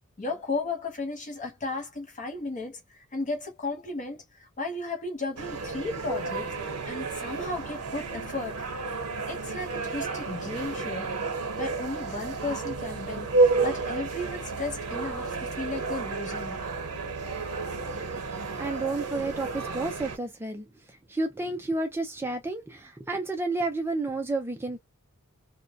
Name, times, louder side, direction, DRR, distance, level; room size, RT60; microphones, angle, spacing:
voice 1, 0.2-8.6 9.3-11.2 11.6-16.7, left 3 dB, 35° left, 0.7 m, -35 dB
sound 1, 5.4-20.2, right 3 dB, 85° right, 0.7 m, -31 dB
voice 2, 18.6-20.7 21.1-24.8, right 2 dB, 10° right, 0.4 m, -31 dB
2.2 x 2.1 x 2.6 m
head